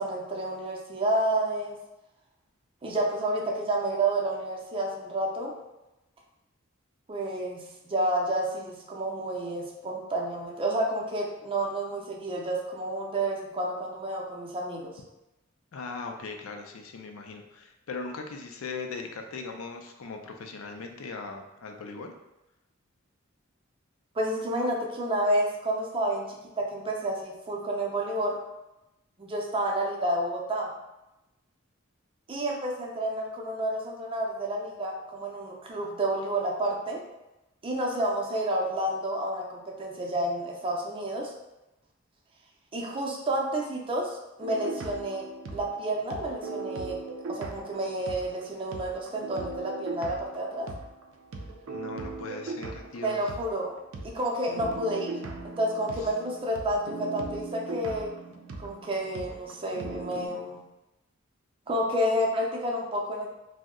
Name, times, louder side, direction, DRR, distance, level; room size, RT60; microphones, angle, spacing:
voice 1, 0.0-1.8 2.8-5.5 7.1-15.0 24.2-28.4 29.2-30.7 32.3-37.0 37.6-41.3 42.7-45.3 45.5-47.0 47.3-50.7 53.0-53.7 54.0-55.1 55.6-58.1 58.6-60.6 61.7-63.3, right 1 dB, 25° right, -1 dB, 0.5 m, -30 dB
voice 2, 15.7-22.1 51.7-53.2 56.0-56.1, left 4 dB, 85° left, 4 dB, 0.4 m, -39 dB
sound 1, 44.4-48.4 48.7-60.3, right 3 dB, 80° right, 0.4 m, -39 dB
2.6 x 2.1 x 3.6 m, 0.96 s
head